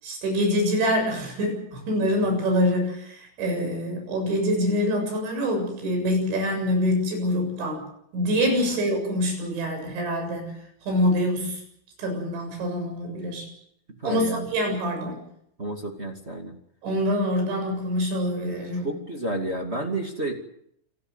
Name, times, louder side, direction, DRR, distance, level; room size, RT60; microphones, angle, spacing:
voice 1, 0.0-7.8 8.1-11.6 12.0-13.5 14.0-15.2 16.8-18.9, equal, 80° right, 3 dB, 9.7 m, -25 dB
voice 2, 14.0-14.5 15.6-16.6 18.8-20.3, right 2 dB, 25° right, 3 dB, 1.5 m, -30 dB
27.5 x 16.5 x 8.1 m, 0.71 s
omnidirectional pair, 5.2 m